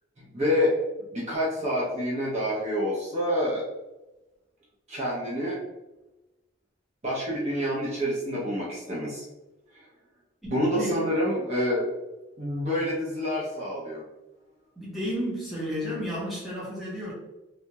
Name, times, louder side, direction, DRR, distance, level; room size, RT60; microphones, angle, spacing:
voice 1, 0.3-0.7 1.1-3.6 4.9-5.6 7.0-9.2 9.7-9.8 10.5-11.9 12.4-14.0, equal, 35° right, -6 dB, 0.6 m, -27 dB
voice 2, 10.4-11.0 14.8-17.1, equal, ahead, -9 dB, 0.7 m, -32 dB
2.3 x 2.0 x 2.8 m, 1.0 s
head